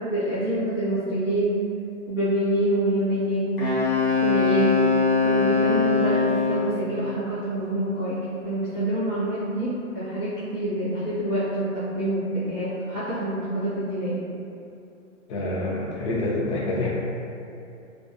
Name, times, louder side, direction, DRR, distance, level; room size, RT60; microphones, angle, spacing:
voice 1, 0.1-1.5 2.1-3.6 4.2-4.8 5.2-8.1 8.4-9.7 9.9-11.7 11.9-14.2, right 1 dB, 10° left, -25 dB, 0.3 m, -26 dB
Wind instrument woodwind instrument, 3.6-6.7, left 4 dB, 85° left, 1.2 m, -22 dB
voice 2, 15.3-16.9, left 2 dB, 55° left, -5 dB, 0.7 m, -27 dB
2.3 x 2.1 x 2.5 m, 2.6 s
hypercardioid pair, 150°, 41 cm